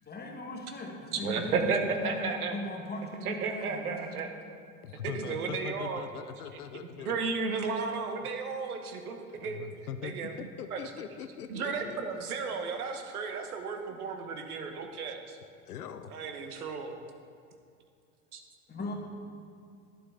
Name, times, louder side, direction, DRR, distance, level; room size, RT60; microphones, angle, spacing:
voice 1, 0.1-4.4 18.7-18.9, left 2 dB, 20° left, 0 dB, 1.6 m, -38 dB
voice 2, 1.2-2.6 3.2-4.3 5.0-6.0 7.0-9.6 10.0-10.4 10.7-10.8 11.5-15.4 16.1-16.9 18.3-18.4, right 5 dB, 75° right, 5 dB, 1.1 m, -33 dB
voice 3, 4.8-7.2 9.3-12.4 13.9-14.0 15.7-16.1, left 7 dB, 85° left, 10 dB, 0.6 m, -42 dB
11.0 x 7.6 x 3.7 m, 2.4 s
hypercardioid pair, 85°, 44 cm